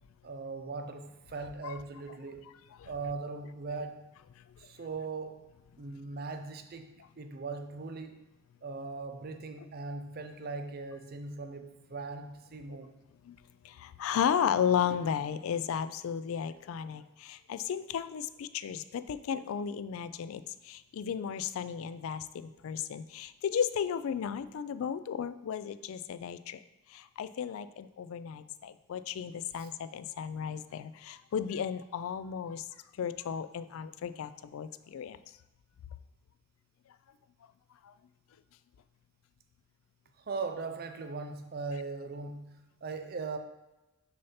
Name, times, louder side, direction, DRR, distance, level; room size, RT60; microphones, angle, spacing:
voice 1, 0.2-2.5 2.8-4.0 4.6-5.5 5.8-8.2 8.6-12.9 29.6-29.7 40.3-43.4, right 4 dB, 45° right, 0.5 m, -39 dB
voice 2, 13.6-26.6 26.9-32.6 33.0-35.2 37.8-37.9, left 8 dB, 70° left, 0.3 m, -34 dB
6.4 x 2.8 x 5.6 m
head